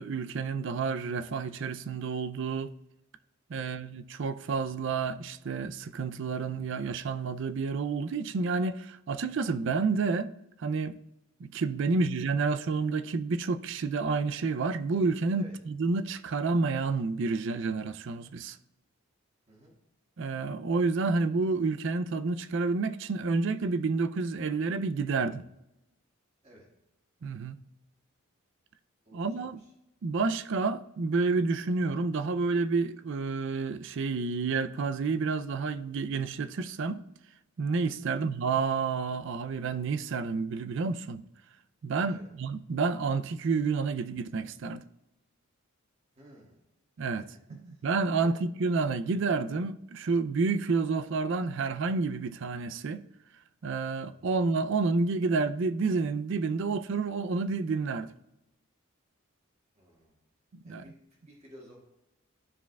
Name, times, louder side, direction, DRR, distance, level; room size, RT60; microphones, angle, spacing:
voice 1, 0.0-2.7 3.5-10.3 10.6-11.0 11.4-18.6 20.2-25.4 27.2-27.6 29.1-29.6 30.0-37.0 37.6-41.2 41.8-44.8 47.0-47.3 47.5-53.0 53.6-58.1 60.6-60.8, right 4 dB, 60° right, 0.4 m, -29 dB
voice 2, 29.0-29.7 38.0-38.3 42.1-42.3 46.1-46.6 47.1-47.2 47.7-47.8 48.1-48.4 54.1-54.4 59.7-60.2 60.6-61.8, equal, 30° right, 1.7 m, -55 dB
12.0 x 4.8 x 2.3 m
head